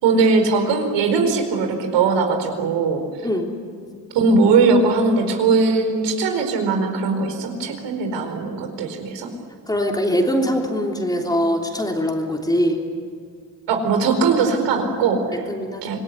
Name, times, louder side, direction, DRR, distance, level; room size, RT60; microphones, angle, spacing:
voice 1, 0.0-3.0 4.1-9.3 13.7-15.4 15.8-16.0, right 4 dB, 85° right, 5 dB, 4.7 m, -19 dB
voice 2, 9.7-12.8 15.5-15.8, equal, 10° left, 1 dB, 3.3 m, -22 dB
26.5 x 19.5 x 9.9 m, 2.1 s
cardioid pair, 130°, 41 cm